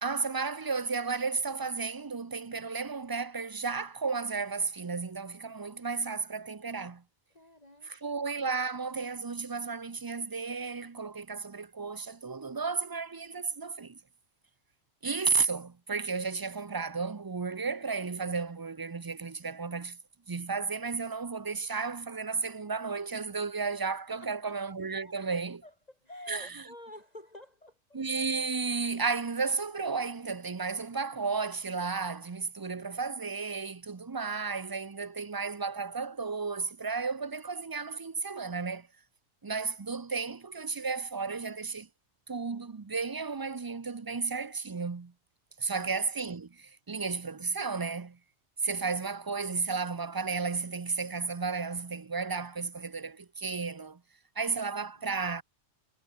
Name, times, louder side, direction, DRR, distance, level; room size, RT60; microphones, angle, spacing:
voice 1, 0.0-7.0 7.8-14.0 15.0-20.0 20.3-25.6 26.3-26.6 27.9-38.9 39.4-41.9 42.3-45.1 45.6-48.2 48.6-54.0 54.4-55.4, right 4 dB, 30° right, 0.4 m, -33 dB
voice 2, 7.3-8.2 24.1-24.5 25.0-25.2 25.6-28.0 45.5-45.9 55.1-55.2, left 1 dB, 30° left, 4.9 m, -50 dB
omnidirectional pair, 1.4 m